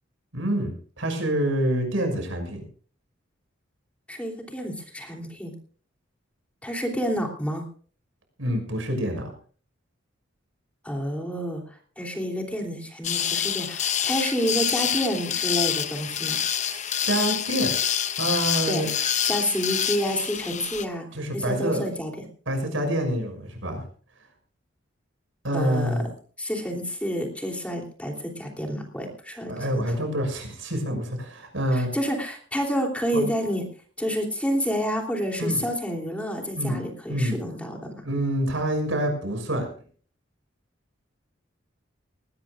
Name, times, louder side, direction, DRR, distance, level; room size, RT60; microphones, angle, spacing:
voice 1, 0.3-2.6 8.4-9.3 16.6-17.7 18.2-18.9 21.1-21.9 22.5-23.8 25.4-26.1 29.5-31.9 33.1-33.3 35.4-35.6 36.5-36.8 37.1-37.4 38.0-39.7, right 1 dB, 80° right, 4 dB, 6.2 m, -27 dB
voice 2, 4.1-5.5 6.6-7.6 10.8-16.4 18.6-18.8 19.2-21.0 21.3-22.1 25.5-25.9 26.4-29.8 31.7-33.6 34.0-37.9, equal, 5° left, 1 dB, 3.1 m, -29 dB
sound 1, 13.0-20.9, left 9 dB, 40° left, 0.8 m, -27 dB
20.0 x 18.0 x 2.5 m, 0.43 s
head